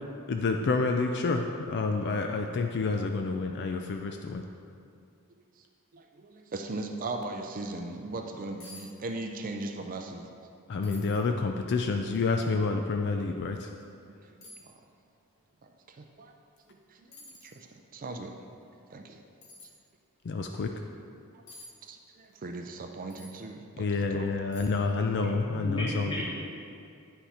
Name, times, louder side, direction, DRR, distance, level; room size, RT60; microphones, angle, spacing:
voice 1, 0.3-4.4 10.7-13.7 20.2-20.7 23.8-26.1, left 4 dB, 50° left, 4 dB, 0.4 m, -28 dB
voice 2, 5.9-10.3 14.3-14.5 15.6-16.3 16.7-18.4 18.9-19.2 21.8-23.9 24.1-24.3, right 2 dB, 40° right, 4 dB, 0.5 m, -39 dB
sound 1, 8.6-8.9 9.2-9.7 10.1-10.2 10.8-11.3 11.9-12.0 13.5-13.6 14.4-14.7 16.6-16.7 17.1-17.6 19.4-19.7 21.5-21.7 23.1-23.4 23.9-24.0 24.5-24.9 25.2-25.3, left 2 dB, 65° left, 1.3 m, -50 dB
voice 3, 25.2-26.4, equal, 20° left, -6 dB, 1.7 m, -35 dB
9.6 x 5.8 x 4.3 m, 2.4 s
head